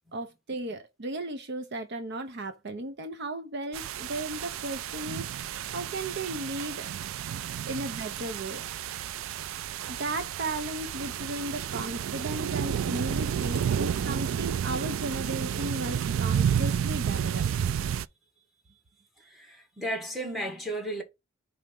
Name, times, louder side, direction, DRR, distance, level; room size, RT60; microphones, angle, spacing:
voice 1, 0.1-6.9 7.7-8.6 9.9-17.5, right 1 dB, 55° right, 0.8 m, -35 dB
sound 1, 3.7-18.1, right 8 dB, 75° right, 0.3 m, -31 dB
voice 2, 19.3-21.0, right 1 dB, ahead, 1.8 m, -34 dB
4.9 x 3.6 x 5.3 m
head